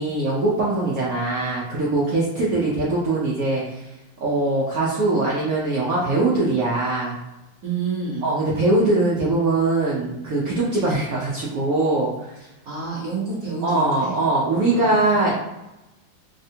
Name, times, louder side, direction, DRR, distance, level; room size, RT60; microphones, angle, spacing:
voice 1, 0.0-3.8 4.2-7.2 8.2-12.3 13.6-15.3, right 2 dB, 80° right, -7 dB, 0.8 m, -22 dB
voice 2, 7.6-8.3 12.4-14.1 14.7-15.3, right 5 dB, 60° right, -6 dB, 1.0 m, -30 dB
3.4 x 2.1 x 2.7 m, 0.96 s
omnidirectional pair, 2.3 m